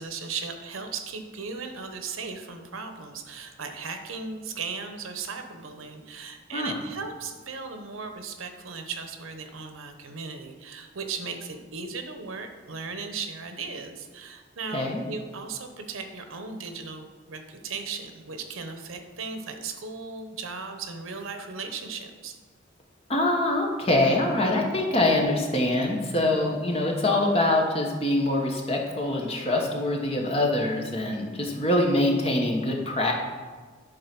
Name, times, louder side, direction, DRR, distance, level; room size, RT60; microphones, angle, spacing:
voice 1, 0.0-22.3 26.2-26.6, right 4 dB, 85° right, 6 dB, 0.9 m, -37 dB
voice 2, 14.7-15.0 23.1-33.1, left 1 dB, 30° left, 0 dB, 1.1 m, -24 dB
10.5 x 3.9 x 6.0 m, 1.5 s
head